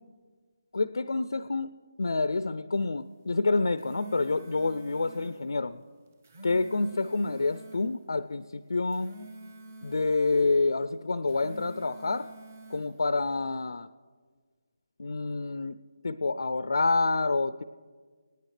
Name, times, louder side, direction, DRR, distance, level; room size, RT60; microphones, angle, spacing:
voice 1, 0.7-1.7 2.0-5.8 6.4-9.1 9.8-12.3 12.7-13.9 15.0-15.8 16.0-17.6, left 3 dB, 75° left, 13 dB, 0.4 m, -28 dB
sound 1, 3.6-5.4 6.1-7.9 8.7-10.5 11.2-12.9, right 1 dB, 25° right, 0.9 m, -47 dB
23.5 x 9.8 x 3.3 m, 1.5 s
hypercardioid pair, 180°, 2 cm